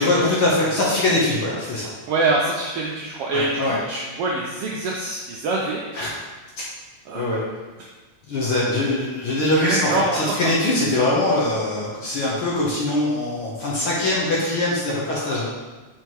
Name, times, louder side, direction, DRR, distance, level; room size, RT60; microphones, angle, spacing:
voice 1, 0.0-1.9 3.3-3.8 5.9-6.1 7.1-7.4 8.3-15.5, left 2 dB, 60° left, -6 dB, 1.5 m, -22 dB
voice 2, 2.1-5.9 7.1-7.4 9.6-10.2, right 2 dB, 80° right, -2 dB, 1.3 m, -25 dB
4.6 x 4.5 x 4.6 m, 1.2 s
omnidirectional pair, 3.3 m